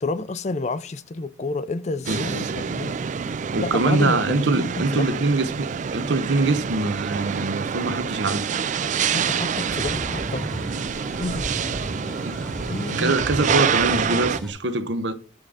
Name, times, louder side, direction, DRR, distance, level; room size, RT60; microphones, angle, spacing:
voice 1, 0.0-3.0 3.6-5.3 9.1-10.5 11.2-11.6 12.7-13.2, left 3 dB, 40° left, 0.5 m, -29 dB
sound 1, 2.1-14.4, right 6 dB, 40° right, 0.3 m, -27 dB
voice 2, 2.1-2.5 3.5-8.5 12.2-12.7 13.0-15.1, right 2 dB, 70° right, 0.8 m, -24 dB
sound 2, 9.5-14.5, equal, ahead, 1.0 m, -34 dB
8.7 x 3.8 x 4.8 m
head